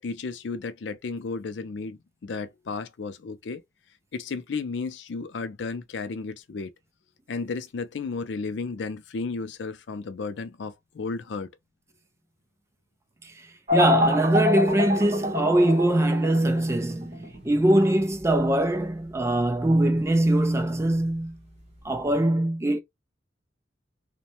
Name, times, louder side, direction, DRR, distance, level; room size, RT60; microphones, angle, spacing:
voice 1, 0.0-3.6 4.1-6.7 7.3-11.5, left 4 dB, 80° left, 0.4 m, -33 dB
voice 2, 13.7-21.4 21.8-22.8, right 1 dB, 15° right, 0.3 m, -22 dB
sound 1, 13.7-22.1, left 2 dB, 35° right, 1.0 m, -29 dB
2.6 x 2.1 x 2.8 m
head